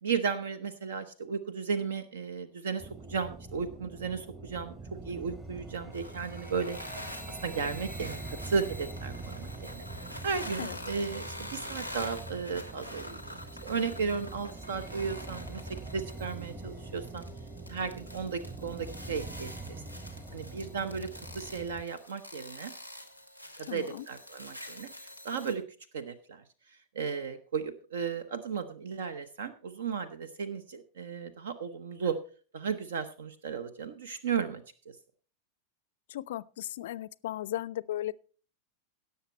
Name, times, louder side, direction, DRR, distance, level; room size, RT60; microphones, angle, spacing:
voice 1, 0.0-4.7 5.0-9.8 10.2-15.6 15.9-17.2 17.7-19.5 20.3-21.1 21.3-22.7 23.6-25.6 25.9-26.4 26.9-32.2 32.5-34.9, right 5 dB, 60° right, 0.9 m, -35 dB
sound 1, 2.8-21.8, right 2 dB, 15° right, 1.5 m, -44 dB
sound 2, 5.9-25.5, equal, 85° right, 1.5 m, -46 dB
voice 2, 23.7-24.1 36.1-38.2, left 13 dB, 55° left, 0.4 m, -36 dB
17.0 x 6.9 x 4.3 m
figure-of-eight pair, 90°, 0 cm